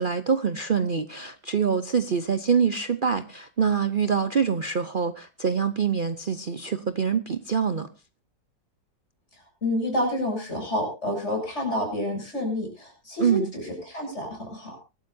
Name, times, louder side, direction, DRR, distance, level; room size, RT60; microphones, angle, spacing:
voice 1, 0.0-7.9 13.2-13.5, right 6 dB, 75° right, 11 dB, 0.4 m, -25 dB
voice 2, 9.6-14.8, left 1 dB, 35° left, 1 dB, 7.8 m, -29 dB
24.5 x 12.5 x 2.7 m, 0.30 s
omnidirectional pair, 2.0 m